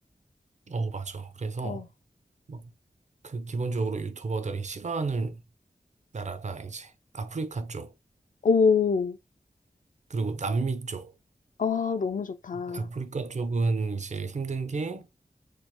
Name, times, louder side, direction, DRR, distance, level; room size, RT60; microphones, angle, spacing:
voice 1, 0.7-1.9 2.5-2.7 3.2-5.4 6.1-7.9 10.1-11.1 12.5-15.1, right 3 dB, 45° right, 0.4 m, -31 dB
voice 2, 8.4-9.2 11.6-12.9, left 5 dB, 55° left, 0.4 m, -25 dB
3.1 x 2.0 x 3.0 m
wide cardioid pair, 50°, 16 cm